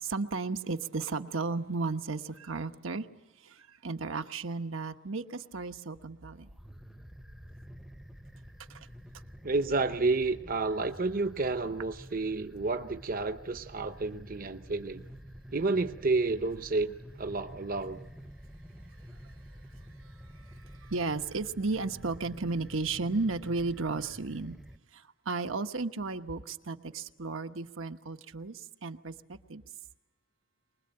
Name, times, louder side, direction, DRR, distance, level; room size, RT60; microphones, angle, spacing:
voice 1, 0.0-3.1 3.4-6.5 8.7-8.8 20.8-24.6 24.9-29.1 29.5-29.6, right 3 dB, 80° right, 7 dB, 1.2 m, -34 dB
sound 1, 6.4-24.8, equal, ahead, 0.7 m, -49 dB
voice 2, 9.4-15.0 15.5-18.0, right 3 dB, 45° right, 9 dB, 0.8 m, -30 dB
24.0 x 20.5 x 8.9 m, 1.1 s
head